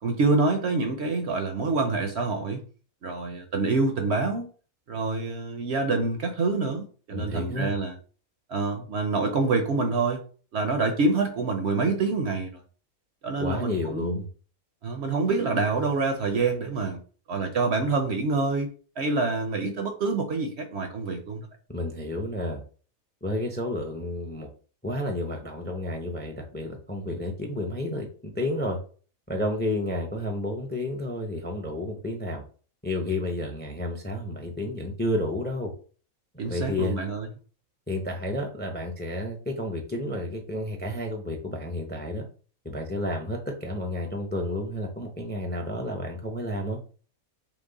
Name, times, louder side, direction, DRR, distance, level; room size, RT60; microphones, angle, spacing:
voice 1, 0.0-2.6 3.0-4.5 4.9-8.0 8.5-10.2 10.5-12.6 13.2-14.2 14.8-17.0 17.3-18.7 19.0-21.5 36.4-37.3, right 3 dB, 60° right, 0.8 m, -26 dB
voice 2, 7.1-7.7 13.4-14.3 21.7-22.6 23.2-24.5 24.8-28.8 29.3-32.4 32.8-35.7 36.5-37.0 37.9-42.2 42.6-46.8, left 1 dB, 10° left, 0.5 m, -31 dB
5.8 x 2.1 x 4.0 m
omnidirectional pair, 1.5 m